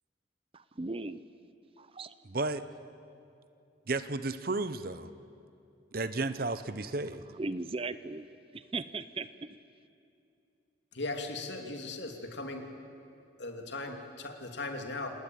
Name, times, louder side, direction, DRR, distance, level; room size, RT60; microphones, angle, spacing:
voice 1, 0.5-1.2 1.8-2.1 7.4-8.2 8.5-9.3, right 3 dB, 30° right, 14 dB, 0.6 m, -37 dB
voice 2, 2.2-2.6 3.9-5.1 5.9-7.2, right 3 dB, 50° right, 13 dB, 0.9 m, -33 dB
voice 3, 10.9-12.7 13.4-15.1, left 2 dB, 65° left, 3 dB, 2.8 m, -38 dB
28.5 x 18.5 x 9.1 m, 2.7 s
head